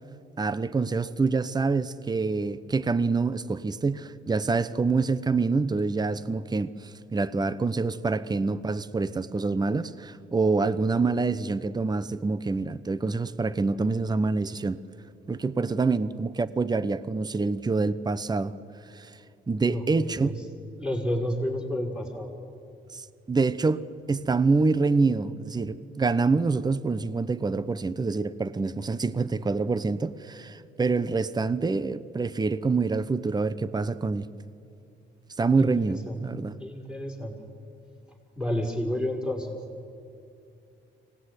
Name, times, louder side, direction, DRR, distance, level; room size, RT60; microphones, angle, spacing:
voice 1, 0.4-14.8 15.3-18.5 18.9-19.1 19.5-20.3 22.9-34.3 35.4-36.6, right 4 dB, 20° right, 0.9 m, -26 dB
voice 2, 19.7-20.4 20.8-22.3 35.5-36.2 36.6-37.3 38.4-39.6, left 1 dB, 5° right, 5.5 m, -30 dB
24.5 x 18.5 x 9.8 m
cardioid pair, 90°, 20 cm